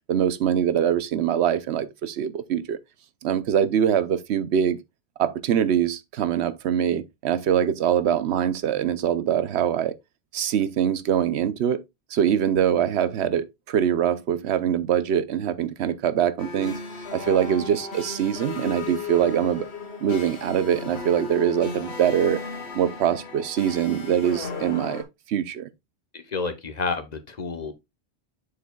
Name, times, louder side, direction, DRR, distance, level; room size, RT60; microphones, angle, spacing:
voice 1, 0.1-2.8 3.2-4.8 5.2-9.9 10.3-11.8 12.1-16.8 17.1-19.7 20.0-22.4 22.7-25.7, right 9 dB, 90° right, 0.9 m, -23 dB
sound 1, 16.4-25.0, left 4 dB, 85° left, 1.6 m, -35 dB
voice 2, 26.1-27.7, left 4 dB, 40° left, 1.1 m, -30 dB
7.5 x 6.7 x 2.3 m
omnidirectional pair, 1.1 m